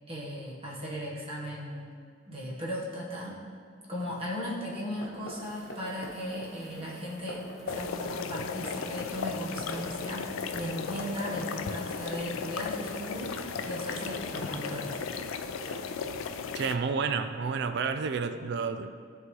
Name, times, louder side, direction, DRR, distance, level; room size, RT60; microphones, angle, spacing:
voice 1, 0.1-2.0 2.3-3.4 3.9-7.5 7.7-13.4 13.6-15.0, equal, 30° right, -5 dB, 1.3 m, -37 dB
sound 1, 4.9-15.8, equal, 50° left, 1.1 m, -46 dB
Bicycle, 5.1-15.7, left 1 dB, ahead, 1.0 m, -58 dB
sound 2, 7.7-16.7, left 5 dB, 80° left, 0.4 m, -36 dB
voice 2, 16.5-18.9, right 5 dB, 55° right, 9 dB, 0.3 m, -30 dB
11.5 x 3.8 x 3.2 m, 2.2 s
head